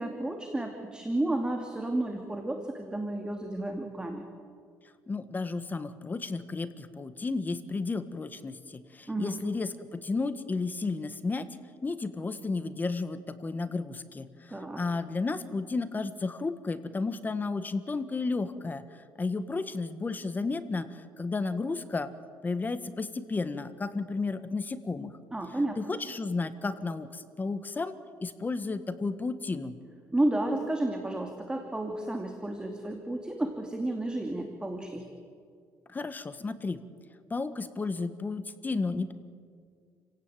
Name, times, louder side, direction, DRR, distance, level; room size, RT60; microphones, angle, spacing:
voice 1, 0.0-4.3 9.1-9.4 14.5-14.8 25.3-25.8 30.1-35.1, right 1 dB, 10° right, 4 dB, 2.6 m, -32 dB
voice 2, 5.1-11.5 11.8-22.1 22.4-25.2 25.8-27.9 28.2-29.8 35.9-36.8 37.3-39.1, left 3 dB, 25° left, 11 dB, 1.6 m, -33 dB
30.0 x 17.0 x 9.3 m, 2.2 s
cardioid pair, 105°, 8 cm